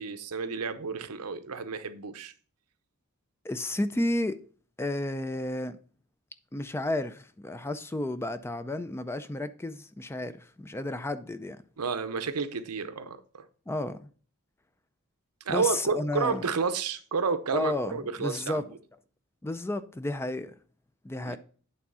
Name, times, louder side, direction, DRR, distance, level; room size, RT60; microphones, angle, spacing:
voice 1, 0.0-2.3 11.8-13.5 15.5-18.6 21.2-21.4, right 5 dB, 85° right, 0.7 m, -31 dB
voice 2, 3.4-4.4 4.8-5.8 6.5-11.6 13.7-14.0 15.5-16.5 17.5-18.6 19.4-20.5 21.0-21.4, left 1 dB, 10° left, 0.4 m, -32 dB
8.6 x 3.6 x 5.4 m
head